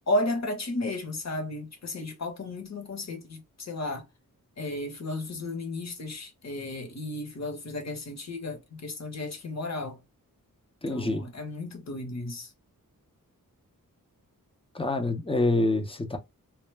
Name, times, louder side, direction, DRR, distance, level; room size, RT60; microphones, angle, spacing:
voice 1, 0.1-4.1 4.6-10.0 10.9-12.5, left 2 dB, 50° left, 0.9 m, -33 dB
voice 2, 10.8-11.2 14.7-16.2, left 2 dB, 15° left, 0.5 m, -26 dB
2.2 x 2.0 x 3.1 m
wide cardioid pair, 90°, 35 cm